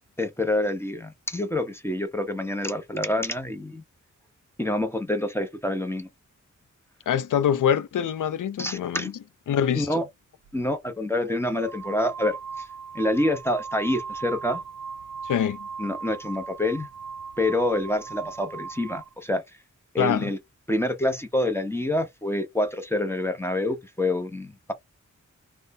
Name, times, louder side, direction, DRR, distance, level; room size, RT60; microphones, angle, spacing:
voice 1, 0.2-3.8 4.6-6.1 8.6-9.1 9.7-10.1 10.5-12.7 12.9-14.6 15.8-16.9 17.4-19.4 19.9-20.4 20.7-24.7, left 1 dB, 10° left, 0.7 m, -27 dB
voice 2, 7.1-9.1 9.5-10.0 15.2-15.7 20.0-20.3, left 9 dB, 85° left, 0.5 m, -24 dB
sound 1, 10.5-10.6 11.4-19.1, right 5 dB, 70° right, 0.5 m, -38 dB
2.6 x 2.1 x 3.5 m
wide cardioid pair, 105°, 31 cm